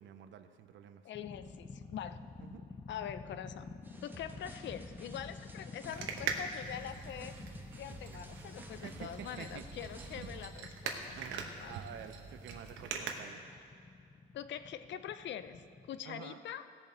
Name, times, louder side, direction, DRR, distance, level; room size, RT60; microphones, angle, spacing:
voice 1, 0.0-1.0 2.4-2.6 8.8-9.6 11.2-13.4 16.1-16.4, right 9 dB, 70° right, 9 dB, 0.7 m, -49 dB
voice 2, 1.0-2.2 2.9-3.7 4.0-7.4 7.7-11.2 11.6-11.7 14.3-16.7, left 9 dB, 65° left, 12 dB, 0.6 m, -44 dB
sound 1, 1.1-16.0, left 4 dB, 25° left, 0.7 m, -50 dB
sound 2, 3.8-10.5, right 1 dB, 10° right, 1.2 m, -52 dB
sound 3, 5.8-13.2, right 6 dB, 90° right, 1.0 m, -43 dB
16.0 x 7.1 x 4.3 m, 2.5 s
cardioid pair, 90°, 20 cm